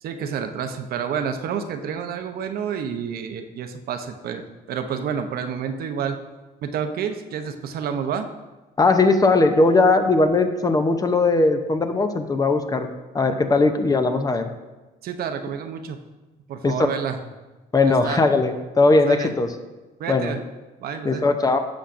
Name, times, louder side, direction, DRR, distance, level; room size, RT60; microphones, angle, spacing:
voice 1, 0.0-6.2 6.6-8.3 15.0-16.0 16.5-17.2 17.8-18.2 19.1-19.3 20.0-20.4 20.8-21.2, right 7 dB, 65° right, 7 dB, 0.7 m, -29 dB
voice 2, 8.8-12.9 13.1-14.5 16.6-16.7 17.7-19.5 20.1-20.3 21.0-21.6, left 3 dB, 20° left, 7 dB, 0.6 m, -19 dB
11.5 x 6.9 x 2.5 m, 1.1 s
cardioid pair, 110°, 17 cm